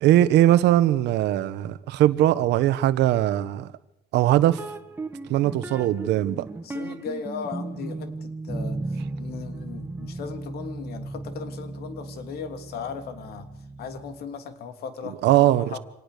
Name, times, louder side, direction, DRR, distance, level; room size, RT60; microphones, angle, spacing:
voice 1, 0.0-3.7 4.1-4.6 5.3-6.5 15.2-15.8, right 13 dB, 85° right, 15 dB, 1.3 m, -20 dB
sound 1, 4.6-14.3, right 2 dB, 10° right, 1.3 m, -36 dB
voice 2, 6.6-13.5 13.8-15.8, left 6 dB, 65° left, 8 dB, 3.0 m, -37 dB
26.5 x 19.0 x 6.8 m, 0.77 s
cardioid pair, 165°, 17 cm